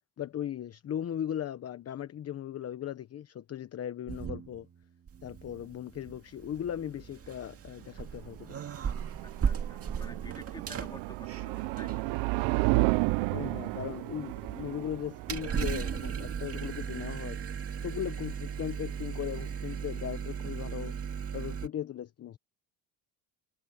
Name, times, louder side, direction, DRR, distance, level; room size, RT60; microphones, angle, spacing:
voice 1, 0.2-4.7 5.2-8.6 13.3-17.4 17.8-21.0 21.3-22.4, left 10 dB, 35° left, 1.0 m, -38 dB
sound 1, 4.1-4.8 5.1-21.7, right 7 dB, 35° right, 2.1 m, -37 dB
sound 2, 8.2-17.2, right 24 dB, 85° right, 0.7 m, -32 dB
voice 2, 9.2-12.1, left 2 dB, 10° left, 3.9 m, -50 dB
cardioid pair, 130°, 42 cm